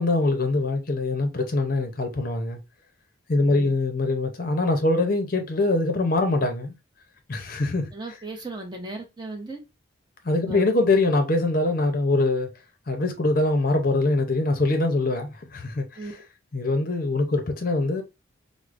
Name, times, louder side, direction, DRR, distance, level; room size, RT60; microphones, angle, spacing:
voice 1, 0.0-2.6 3.3-6.8 7.3-7.9 10.2-12.5 12.9-16.0 16.5-18.0, left 2 dB, 45° left, 0.6 m, -23 dB
voice 2, 3.4-3.7 7.9-9.6 10.5-10.7 16.0-16.1, right 2 dB, 20° right, 0.7 m, -36 dB
4.7 x 2.0 x 2.4 m
head